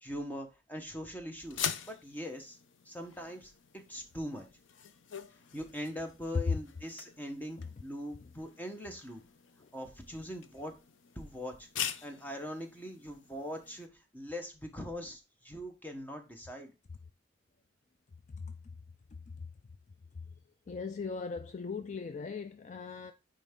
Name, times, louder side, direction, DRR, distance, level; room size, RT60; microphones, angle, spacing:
voice 1, 0.0-2.6 2.8-4.4 5.5-9.2 9.7-10.7 11.2-11.7 12.0-13.9 14.1-16.7, equal, 10° left, 1.0 m, -42 dB
sound 1, 1.4-13.9, left 8 dB, 85° left, 0.6 m, -44 dB
voice 2, 20.7-23.1, left 5 dB, 40° left, 0.3 m, -39 dB
9.1 x 3.4 x 3.7 m
head